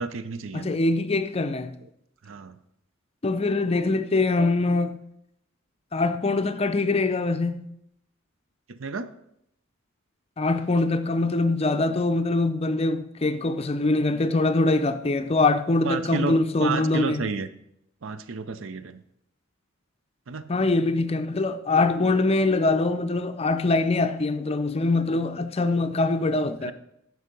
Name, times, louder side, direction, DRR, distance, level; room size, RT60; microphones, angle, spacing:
voice 1, 0.0-0.8 2.3-2.6 8.8-9.1 15.8-17.5 18.0-19.0 20.3-20.5 26.6-26.7, right 4 dB, 70° right, 0.6 m, -31 dB
voice 2, 0.5-1.7 3.2-5.0 5.9-7.7 10.4-17.3 20.5-26.7, left 2 dB, 30° left, 0.5 m, -23 dB
11.0 x 4.7 x 5.3 m
head